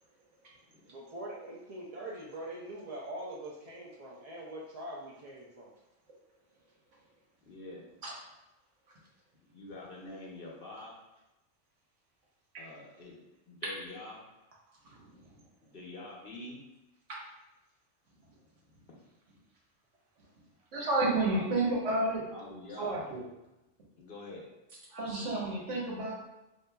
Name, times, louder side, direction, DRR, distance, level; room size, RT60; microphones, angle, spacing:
voice 1, 0.9-5.7, right 1 dB, 65° right, -4 dB, 0.3 m, -43 dB
voice 2, 7.5-7.8 9.4-10.9 12.6-14.2 15.6-16.6 21.0-21.5 22.3-23.0 23.9-24.5, left 2 dB, 55° left, -3 dB, 0.9 m, -46 dB
voice 3, 20.7-22.2 22.8-23.2 24.9-26.1, right 2 dB, 90° right, -4 dB, 1.3 m, -30 dB
5.0 x 2.6 x 2.2 m, 0.97 s
omnidirectional pair, 1.2 m